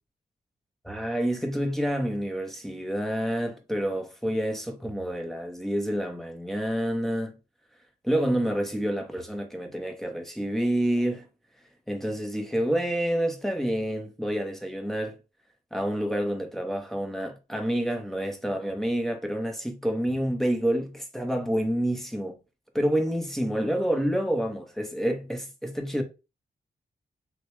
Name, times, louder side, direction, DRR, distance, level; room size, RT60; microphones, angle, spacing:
voice 1, 0.8-7.3 8.0-11.3 11.9-15.2 15.7-22.4 22.7-26.0, equal, ahead, 0.8 m, -28 dB
6.5 x 2.2 x 3.0 m
wide cardioid pair, 165°, 18 cm